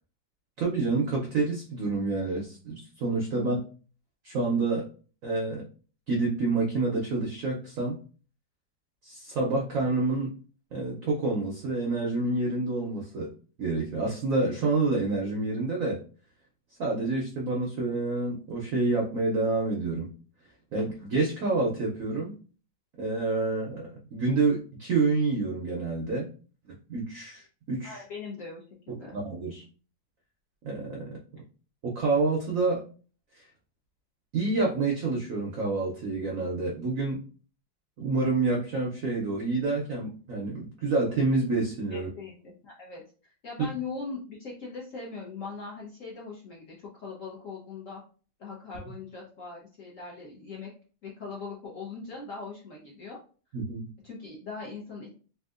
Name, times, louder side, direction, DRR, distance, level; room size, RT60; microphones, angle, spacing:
voice 1, 0.6-3.6 4.2-4.9 5.2-5.6 6.1-8.0 9.0-10.3 10.7-13.3 13.6-16.0 16.8-20.1 20.7-22.3 23.0-26.3 26.7-28.0 29.1-29.6 30.6-31.0 31.8-32.8 33.3-33.4 34.3-37.2 38.0-42.1 53.5-53.9, right 3 dB, 75° right, -2 dB, 0.7 m, -28 dB
voice 2, 27.8-29.2 41.9-48.0 48.4-50.7 51.0-53.2 54.0-55.1, left 4 dB, 65° left, -4 dB, 0.8 m, -40 dB
3.5 x 2.7 x 2.4 m, 0.38 s
omnidirectional pair, 2.2 m